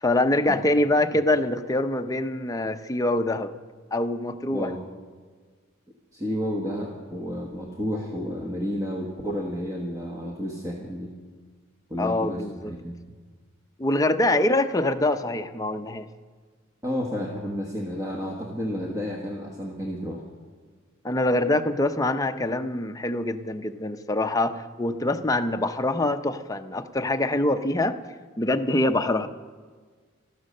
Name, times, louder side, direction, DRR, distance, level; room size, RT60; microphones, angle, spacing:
voice 1, 0.0-3.5 3.9-4.7 12.0-12.7 13.8-16.1 21.0-27.9 28.4-29.3, left 2 dB, 15° left, 7 dB, 0.6 m, -24 dB
voice 2, 6.1-11.1 11.9-13.1 16.8-20.2, equal, 15° right, 0 dB, 1.3 m, -31 dB
14.5 x 13.0 x 6.6 m, 1.5 s
head